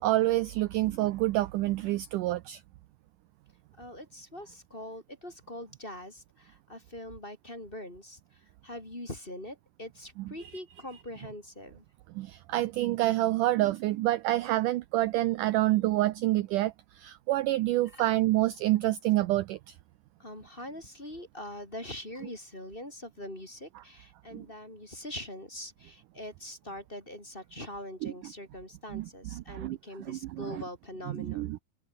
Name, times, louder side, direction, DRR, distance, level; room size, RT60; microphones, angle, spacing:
voice 1, 0.0-2.6 12.2-16.7 17.0-19.6 24.3-24.4 28.0-28.1 28.9-29.0 29.5-29.8 30.1-30.5 31.1-31.6, right 16 dB, 80° right, 1.9 m, -27 dB
voice 2, 3.8-11.8 17.8-18.1 20.2-31.5, left 1 dB, 15° left, 3.8 m, -43 dB
omnidirectional pair, 4.5 m